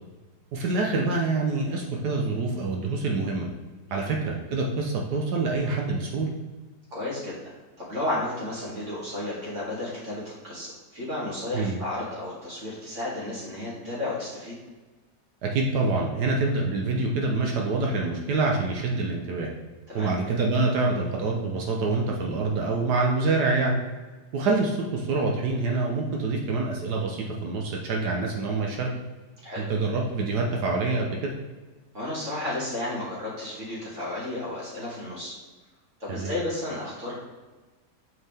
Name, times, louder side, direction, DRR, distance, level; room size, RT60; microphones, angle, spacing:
voice 1, 0.5-3.5 3.9-6.3 11.5-11.8 15.4-19.5 19.9-23.8 24.3-28.9 29.6-31.3 36.1-36.4, right 3 dB, 75° right, 0 dB, 1.4 m, -26 dB
voice 2, 6.9-7.4 7.8-14.5 19.9-20.1 29.4-29.6 31.9-35.3 36.0-37.2, left 1 dB, 45° right, -7 dB, 2.6 m, -33 dB
6.5 x 4.7 x 3.5 m, 1.3 s
omnidirectional pair, 1.8 m